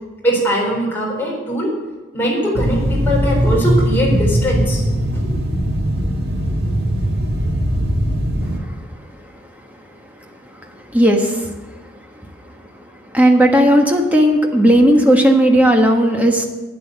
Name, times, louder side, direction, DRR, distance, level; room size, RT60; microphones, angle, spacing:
voice 1, 0.2-1.8 2.1-4.8 5.2-5.3, equal, 10° left, -4 dB, 4.3 m, -20 dB
sound 1, 2.5-8.6, equal, 50° right, 1.9 m, -19 dB
voice 2, 10.9-11.5 13.1-16.5, equal, 10° right, 2 dB, 1.4 m, -13 dB
12.0 x 9.5 x 8.1 m, 1.2 s
head